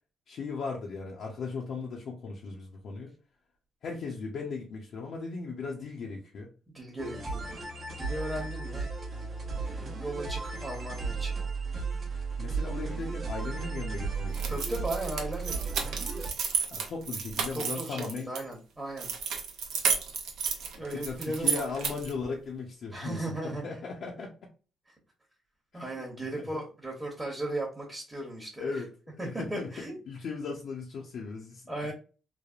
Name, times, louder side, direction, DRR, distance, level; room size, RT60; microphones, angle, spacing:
voice 1, 0.3-3.1 3.8-6.5 12.4-14.6 16.7-18.3 20.9-24.3 25.7-26.1 26.4-26.6 28.6-29.7 30.1-31.9, left 4 dB, 65° left, -2 dB, 0.6 m, -37 dB
voice 2, 6.7-7.6 8.0-8.9 9.6-11.4 14.5-15.9 17.5-19.1 20.8-21.6 22.9-23.6 25.7-28.7 29.2-29.9 31.7-31.9, right 1 dB, 15° right, -2 dB, 0.9 m, -37 dB
sound 1, 7.0-16.3, right 4 dB, 50° right, 0.8 m, -35 dB
sound 2, 14.3-18.4 19.0-22.2, right 6 dB, 80° right, 0.5 m, -32 dB
3.2 x 2.1 x 2.4 m, 0.36 s
cardioid pair, 90°, 0 cm